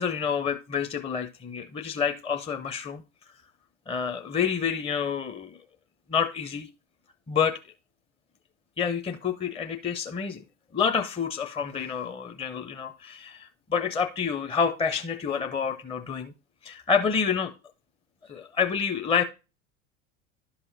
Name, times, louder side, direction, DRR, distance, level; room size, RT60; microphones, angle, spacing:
voice 1, 0.0-3.0 3.9-5.6 6.1-6.7 7.3-7.6 8.8-10.4 10.7-16.3 16.6-17.5 18.3-19.2, left 6 dB, 15° left, 0.6 m, -28 dB
11.0 x 5.6 x 2.6 m
hypercardioid pair, 75°, 39 cm